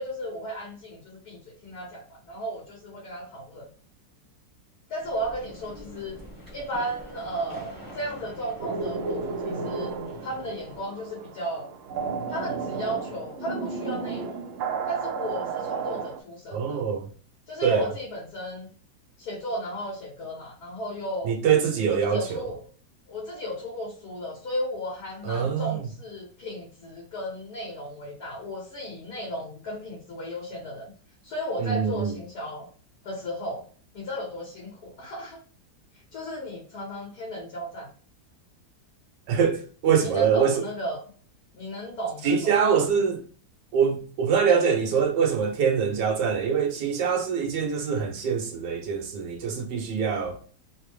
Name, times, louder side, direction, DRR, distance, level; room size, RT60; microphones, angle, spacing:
voice 1, 0.0-3.7 4.9-6.2 6.5-9.9 10.2-11.7 12.3-14.4 14.9-16.8 17.5-18.7 19.2-21.4 21.9-22.6 23.1-30.9 31.2-32.7 33.0-33.6 33.9-35.4 36.1-37.9 40.0-41.0 41.5-42.6 44.5-44.6, equal, 65° left, 1.6 m, -34 dB
sound 1, 5.0-10.9, right 1 dB, 15° right, 0.7 m, -45 dB
sound 2, 8.6-16.2, right 5 dB, 70° right, 0.7 m, -33 dB
voice 2, 16.5-17.1 17.6-17.9 21.2-22.5 25.2-25.8 31.6-32.2 39.3-40.6 42.2-43.2 43.7-50.4, right 6 dB, 90° right, 1.5 m, -24 dB
3.8 x 2.1 x 3.1 m
omnidirectional pair, 1.8 m